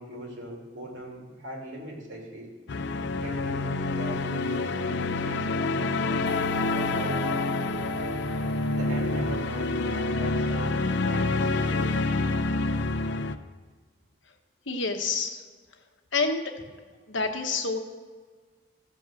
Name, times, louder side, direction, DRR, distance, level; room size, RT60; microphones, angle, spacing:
voice 1, 0.0-2.5 3.2-6.3 6.7-7.4 8.7-12.0, right 1 dB, 80° right, -2 dB, 3.0 m, -39 dB
sound 1, 2.7-13.3, left 3 dB, 65° left, 0.5 m, -27 dB
sound 2, 6.3-10.5, equal, 40° right, 3.1 m, -38 dB
voice 2, 14.7-15.4 16.1-16.5 17.1-17.8, left 4 dB, 85° left, 5 dB, 1.2 m, -28 dB
14.0 x 5.4 x 7.7 m, 1.5 s
head